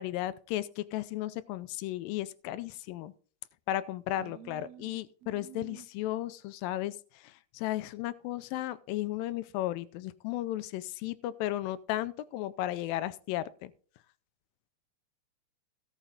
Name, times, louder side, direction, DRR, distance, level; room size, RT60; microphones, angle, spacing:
voice 1, 0.0-3.1 3.7-13.7, left 14 dB, 90° left, 15 dB, 2.4 m, -35 dB
voice 2, 4.2-5.9, right 13 dB, 80° right, 10 dB, 1.5 m, -51 dB
17.5 x 6.0 x 3.9 m, 0.42 s
omnidirectional pair, 3.9 m